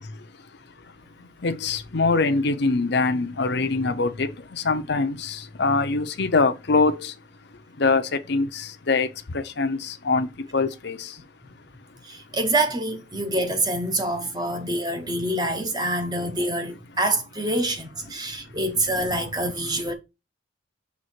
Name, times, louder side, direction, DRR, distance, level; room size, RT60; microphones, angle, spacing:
voice 1, 0.1-12.2 14.0-14.1 16.7-16.8 18.1-18.5 19.7-19.8, left 3 dB, 55° left, 0.7 m, -25 dB
voice 2, 12.0-19.9, right 1 dB, 20° right, 1.0 m, -26 dB
6.4 x 3.7 x 4.5 m
head